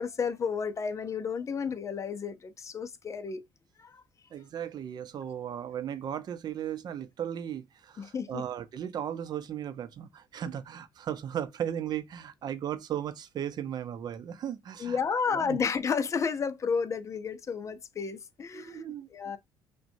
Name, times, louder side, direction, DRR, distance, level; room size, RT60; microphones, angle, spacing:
voice 1, 0.0-3.5 3.8-4.0 8.0-8.4 14.8-18.8 19.1-19.4, left 6 dB, 35° left, 0.5 m, -32 dB
voice 2, 4.3-15.6 18.5-19.1, right 10 dB, 55° right, 0.6 m, -36 dB
5.9 x 2.2 x 2.6 m
cardioid pair, 95°, 8 cm